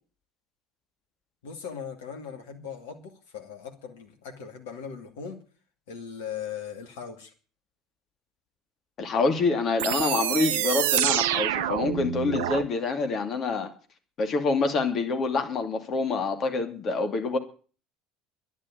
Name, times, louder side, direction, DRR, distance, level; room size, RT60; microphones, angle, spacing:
voice 1, 1.4-5.4 5.9-7.3, left 7 dB, 65° left, 2.3 m, -39 dB
voice 2, 9.0-13.7 14.2-17.4, left 3 dB, 40° left, 2.6 m, -26 dB
sound 1, 9.8-12.7, right 11 dB, 65° right, 0.7 m, -26 dB
12.0 x 11.0 x 8.4 m
figure-of-eight pair, 65°, 0 cm